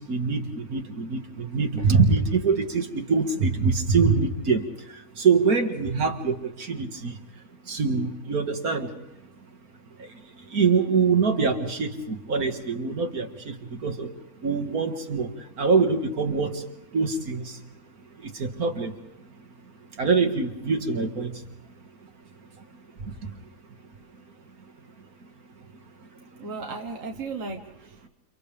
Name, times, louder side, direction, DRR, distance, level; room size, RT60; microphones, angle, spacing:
voice 1, 0.1-0.4 0.7-2.8 3.1-4.6 5.2-6.3 6.7-7.1 7.7-8.9 10.5-13.3 13.8-14.1 14.4-15.3 15.6-16.5 16.9-17.4 18.6-18.9 20.0-21.3, right 5 dB, 75° right, 4 dB, 2.4 m, -23 dB
voice 2, 26.4-28.1, right 4 dB, 60° right, 3 dB, 1.7 m, -35 dB
30.0 x 30.0 x 3.5 m, 0.96 s
omnidirectional pair, 1.6 m